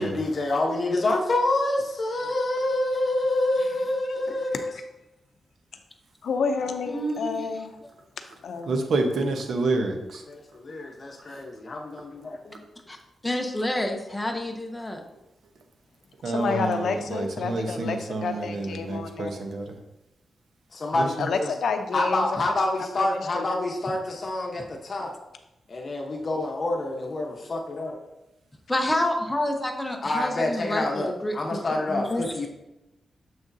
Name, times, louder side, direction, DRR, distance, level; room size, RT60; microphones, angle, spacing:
voice 1, 0.0-4.7 10.3-12.6 20.7-21.5 21.9-25.1 25.7-27.9 30.0-32.5, left 2 dB, 40° left, 1.0 m, -27 dB
voice 2, 6.2-7.8 8.4-8.8 16.2-19.4 21.2-22.3 23.1-23.4, left 5 dB, 75° left, 0.6 m, -29 dB
voice 3, 6.9-7.4 12.9-13.0 13.2-15.0 28.7-31.6 31.9-32.5, left 1 dB, 10° left, 0.8 m, -28 dB
voice 4, 8.7-10.2 11.3-11.4 16.2-19.7 20.9-21.3, right 3 dB, 65° right, 0.9 m, -28 dB
7.0 x 6.3 x 2.7 m
wide cardioid pair, 165°, 0 cm